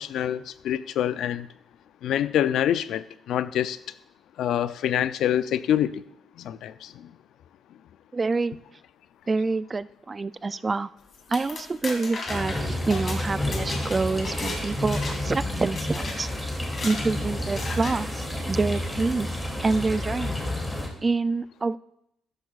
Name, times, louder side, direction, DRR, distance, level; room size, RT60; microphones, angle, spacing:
voice 1, 0.0-1.5 2.0-3.8 4.4-6.0 6.4-7.1, left 10 dB, 80° left, 14 dB, 0.4 m, -26 dB
voice 2, 8.1-8.5 9.3-10.9 11.3-16.5 16.8-19.3 19.6-20.4 21.0-21.8, right 3 dB, 30° right, 16 dB, 0.3 m, -27 dB
sound 1, 11.1-14.6 14.9-15.4 15.8-16.2 16.7-17.1 17.6-18.0, left 3 dB, 45° left, 2.6 m, -35 dB
sound 2, 12.3-20.9, left 1 dB, 10° left, 2.7 m, -30 dB
13.0 x 10.5 x 2.4 m, 0.76 s
cardioid pair, 90°, 0 cm